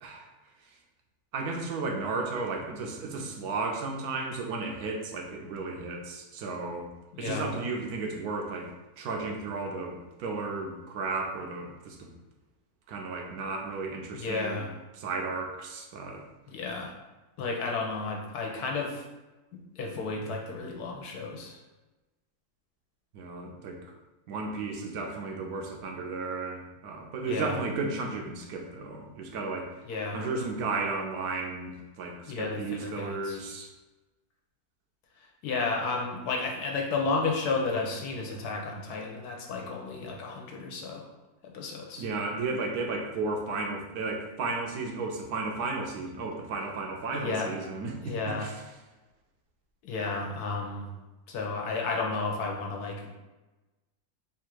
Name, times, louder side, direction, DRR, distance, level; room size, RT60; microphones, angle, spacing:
voice 1, 1.3-6.9 7.2-8.7 9.0-12.1 12.9-14.7 14.9-16.2 23.1-23.8 24.3-29.7 30.1-33.7 42.0-48.6, right 3 dB, 75° right, 2 dB, 1.1 m, -34 dB
voice 2, 7.1-7.5 14.1-14.7 16.5-16.9 17.4-19.0 19.8-21.6 27.2-27.6 29.9-30.2 32.3-33.4 35.4-41.0 41.5-42.0 47.1-47.5 48.0-48.5 49.8-50.9 51.3-53.2, left 3 dB, 80° left, 1 dB, 1.2 m, -32 dB
3.4 x 2.5 x 4.5 m, 1.1 s
omnidirectional pair, 1.7 m